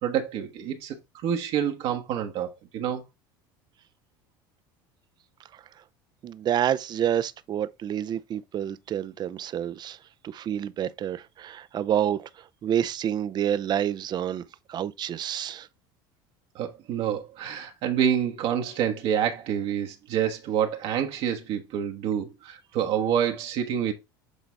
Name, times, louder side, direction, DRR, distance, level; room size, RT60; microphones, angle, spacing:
voice 1, 0.0-1.0 1.2-3.0 16.5-23.9, right 9 dB, 60° right, 1.2 m, -27 dB
voice 2, 6.2-10.0 10.3-12.3 12.6-14.4 14.7-15.7, right 10 dB, 40° right, 0.6 m, -28 dB
8.2 x 4.0 x 3.5 m
hypercardioid pair, 85°, 11 cm